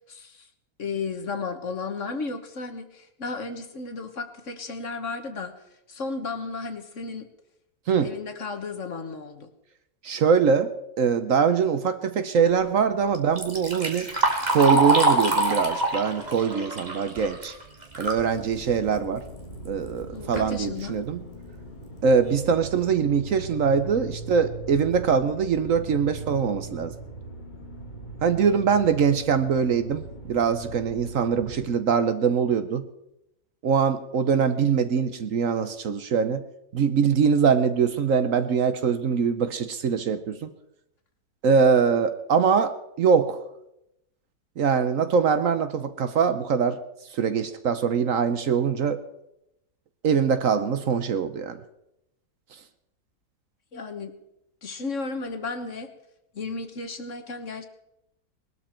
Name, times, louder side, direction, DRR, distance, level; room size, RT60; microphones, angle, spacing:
voice 1, 0.1-0.5 0.8-5.5 5.9-7.3 8.0-9.5 20.1-20.9 53.7-54.1 54.6-55.9 56.3-57.7, left 4 dB, 50° left, 7 dB, 1.6 m, -34 dB
voice 2, 10.0-10.7 11.0-14.1 14.5-17.5 18.0-19.2 19.6-21.2 22.0-26.9 28.2-32.8 33.6-36.4 36.7-40.5 41.4-42.7 43.0-43.4 44.6-46.8 47.1-49.0 50.0-51.6, right 6 dB, 60° right, 11 dB, 1.2 m, -23 dB
Liquid, 13.1-18.3 18.7-18.8 19.6-19.7 20.2-20.5 21.1-21.2 21.7-21.8 22.2-22.5, right 2 dB, 25° right, 2.2 m, -25 dB
sound 1, 18.4-31.7, right 3 dB, 30° left, 1.9 m, -40 dB
20.0 x 12.5 x 4.4 m, 0.83 s
omnidirectional pair, 1.7 m